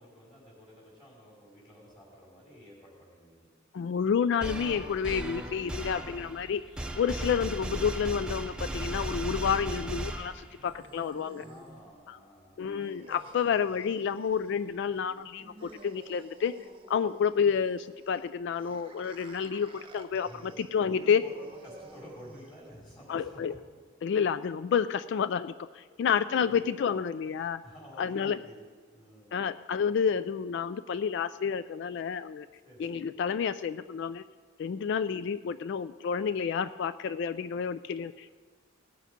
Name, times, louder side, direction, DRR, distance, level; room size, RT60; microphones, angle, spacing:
voice 1, 0.0-3.5 11.3-12.7 20.2-23.6 23.9-24.0 25.9-26.2 26.5-26.6 27.2-27.3 27.6-29.4 32.6-32.9, equal, 25° left, -4 dB, 4.6 m, -51 dB
voice 2, 3.7-6.6 7.0-11.4 12.1-12.2 12.6-16.6 16.9-20.3 20.7-21.2 23.1-23.5 24.0-27.6 28.0-28.4 29.3-32.5 32.8-34.3 34.6-38.4, left 7 dB, 60° left, 14 dB, 0.3 m, -29 dB
sound 1, 4.4-10.7, right 1 dB, 5° right, 0.6 m, -36 dB
sound 2, 10.4-22.8, right 2 dB, 25° right, 0.9 m, -53 dB
17.5 x 7.6 x 5.2 m, 1.5 s
head